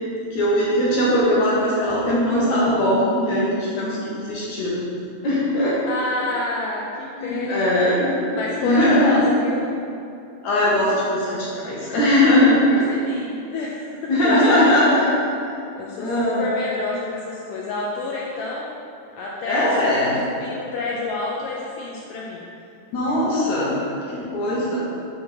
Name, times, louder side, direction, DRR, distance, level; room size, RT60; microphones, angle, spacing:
voice 1, 0.3-4.8 5.2-5.8 7.2-9.2 10.4-12.8 14.1-15.1 16.0-16.5 19.5-20.2 22.9-23.8 24.1-24.8, left 1 dB, 65° left, -7 dB, 1.9 m, -20 dB
voice 2, 5.8-7.7 8.3-9.7 12.7-15.0 15.8-18.7 19.2-20.1 20.4-22.4 23.1-23.2, left 3 dB, 80° left, -3 dB, 1.9 m, -29 dB
6.9 x 3.4 x 5.5 m, 2.6 s
omnidirectional pair, 4.3 m